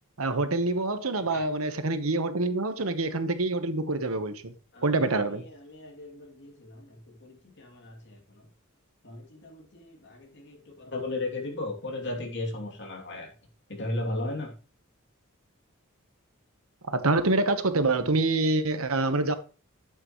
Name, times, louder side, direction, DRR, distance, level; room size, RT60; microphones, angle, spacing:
voice 1, 0.2-4.5 4.8-5.5 16.9-19.3, right 2 dB, 75° right, 1.2 m, -26 dB
voice 2, 4.7-8.5 9.0-13.3 13.7-14.5, left 2 dB, 55° left, 2.8 m, -36 dB
11.5 x 8.9 x 3.1 m
head